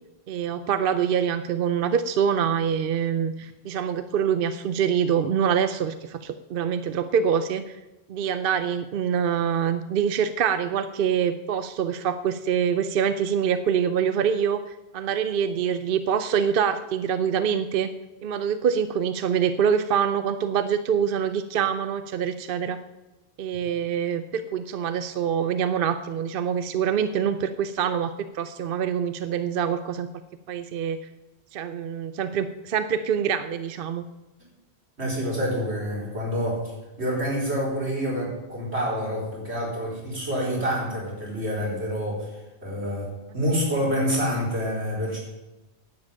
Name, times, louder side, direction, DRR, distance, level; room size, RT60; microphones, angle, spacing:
voice 1, 0.3-7.8 8.1-17.9 18.2-22.8 23.4-30.1 30.5-31.0 31.5-34.0, right 8 dB, 60° right, 12 dB, 0.7 m, -25 dB
voice 2, 35.0-36.7 37.0-45.2, equal, 80° right, -4 dB, 4.6 m, -27 dB
10.5 x 7.4 x 8.7 m, 1.0 s
omnidirectional pair, 1.1 m